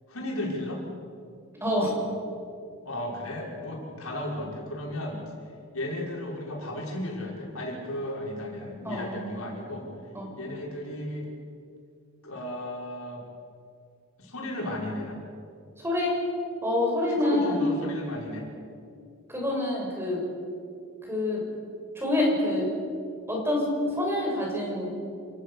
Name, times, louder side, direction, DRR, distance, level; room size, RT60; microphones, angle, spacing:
voice 1, 0.1-0.8 2.8-5.2 5.7-9.9 10.4-11.3 12.2-13.2 14.2-15.2 17.1-18.5, left 1 dB, 85° left, -2 dB, 5.8 m, -34 dB
voice 2, 1.6-1.9 8.8-9.2 10.1-10.3 15.8-16.2 16.6-17.6 19.3-20.2 21.1-21.4 21.9-22.7 23.3-23.7 23.9-24.9, left 1 dB, 10° right, -2 dB, 6.7 m, -26 dB
28.0 x 18.5 x 6.7 m, 2.3 s
head